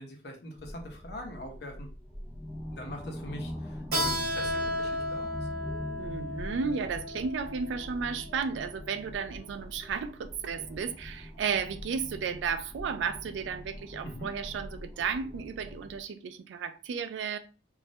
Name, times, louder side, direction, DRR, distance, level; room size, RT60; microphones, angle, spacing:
voice 1, 0.0-1.9 2.7-5.4 14.0-14.3, left 1 dB, 60° left, 0.6 m, -42 dB
sound 1, 0.6-16.0, left 1 dB, 15° left, 0.3 m, -43 dB
Keyboard (musical), 3.9-9.2, equal, 55° right, 1.0 m, -34 dB
voice 2, 6.0-17.4, right 6 dB, 85° right, 0.3 m, -33 dB
2.2 x 2.0 x 2.7 m
head